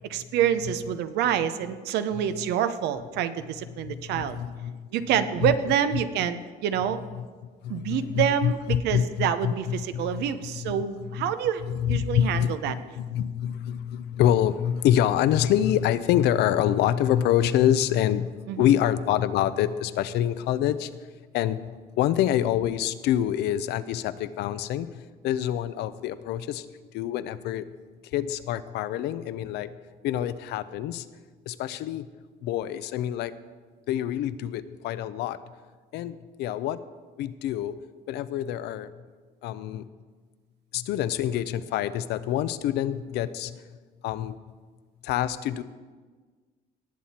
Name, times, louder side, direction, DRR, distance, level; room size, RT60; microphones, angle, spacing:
voice 1, 0.0-4.4 4.9-7.0 7.7-11.6 11.9-12.7 18.5-18.7, right 9 dB, 80° right, 11 dB, 0.8 m, -27 dB
voice 2, 3.8-4.9 5.4-5.5 5.9-6.0 7.2-7.3 7.6-10.7 11.0-11.3 11.6-21.0 21.3-26.7 26.9-27.7 28.1-29.7 30.0-31.1 31.5-32.1 32.4-33.3 33.9-35.4 35.9-36.8 37.2-37.8 38.1-38.9 39.4-39.9 40.7-43.6 44.0-44.4 45.0-45.6, left 11 dB, 80° left, 14 dB, 0.6 m, -26 dB
19.0 x 7.5 x 4.3 m, 1.5 s
cardioid pair, 110°, 17 cm